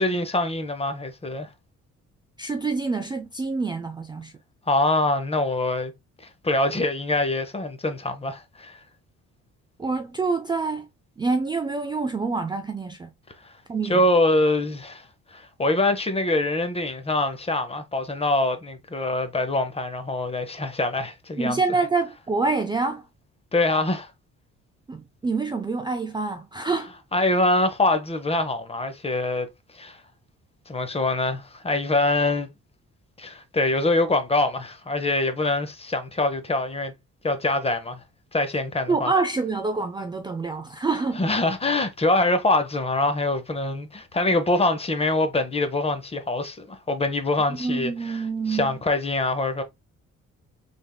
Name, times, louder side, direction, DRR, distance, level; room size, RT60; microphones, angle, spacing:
voice 1, 0.0-1.5 4.7-5.9 6.4-8.8 13.4-13.5 13.8-15.0 15.3-21.6 23.5-24.1 27.1-29.5 29.7-30.0 30.7-32.5 33.2-36.9 37.2-38.0 38.3-39.1 41.2-48.2 48.5-49.6, left 2 dB, 20° left, 0.7 m, -24 dB
voice 2, 2.4-4.3 9.8-10.9 11.2-13.1 13.7-14.0 21.4-23.0 24.9-26.9 38.9-41.2 47.5-48.8, right 4 dB, 15° right, 0.3 m, -26 dB
3.5 x 3.4 x 2.2 m
cardioid pair, 90°, 30 cm